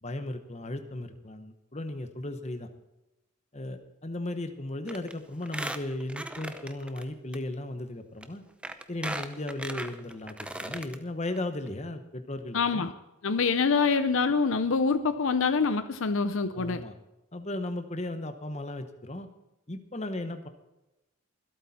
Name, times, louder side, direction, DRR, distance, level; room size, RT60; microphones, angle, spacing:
voice 1, 0.0-2.7 3.5-8.4 8.9-12.9 16.5-16.9 17.3-19.3 19.7-20.5, left 1 dB, 30° left, 8 dB, 1.1 m, -36 dB
Squeak, 4.9-5.1 5.4-7.0 7.3-7.4 8.2-8.3 8.6-11.0 11.4-11.5 11.7-11.8, right 1 dB, 5° right, 0.6 m, -37 dB
voice 2, 12.5-12.9 13.2-16.8, left 5 dB, 60° left, 11 dB, 0.6 m, -25 dB
24.0 x 8.5 x 4.3 m, 0.96 s
head